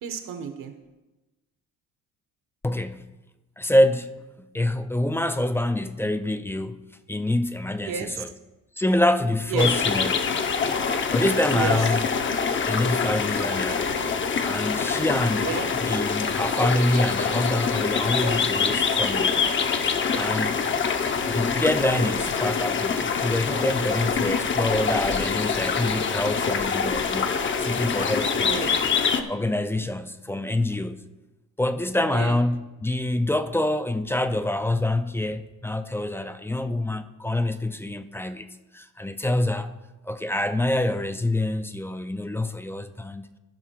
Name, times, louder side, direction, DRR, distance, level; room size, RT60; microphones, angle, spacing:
voice 1, 0.0-0.7 7.8-8.2 9.5-9.8 11.5-11.9 13.8-14.0 15.4-15.8 28.4-29.0 32.1-32.4, right 6 dB, 65° right, 1.4 m, -32 dB
voice 2, 2.6-3.1 3.6-8.3 8.8-10.3 10.9-12.1 12.7-13.9 14.4-15.5 15.8-19.4 20.1-20.6 21.3-27.3 27.6-28.6 29.3-31.0 31.6-38.5 38.7-39.7 40.1-43.2, left 1 dB, 5° left, 0.4 m, -26 dB
sound 1, 9.6-29.2, left 5 dB, 35° left, 0.8 m, -25 dB
14.5 x 5.8 x 4.6 m
cardioid pair, 110°, 34 cm